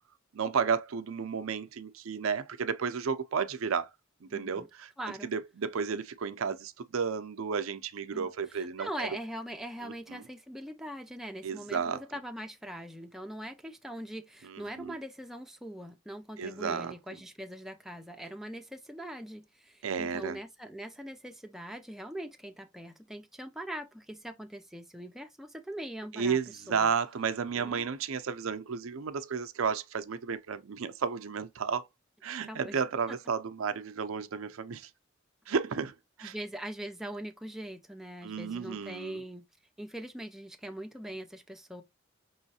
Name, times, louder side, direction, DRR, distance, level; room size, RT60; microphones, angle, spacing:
voice 1, 0.3-3.9 4.2-4.9 5.2-9.1 9.8-10.2 11.4-12.0 14.4-14.9 16.4-16.9 19.8-20.4 26.1-31.9 32.2-34.9 35.5-36.3 38.2-39.2, right 6 dB, 85° right, 0.5 m, -32 dB
voice 2, 4.3-4.7 5.0-5.3 8.1-8.3 8.5-26.4 26.7-26.9 27.5-27.8 32.5-32.8 33.1-33.2 36.2-39.4 39.8-41.8, right 1 dB, ahead, 0.5 m, -42 dB
5.5 x 3.1 x 2.8 m
head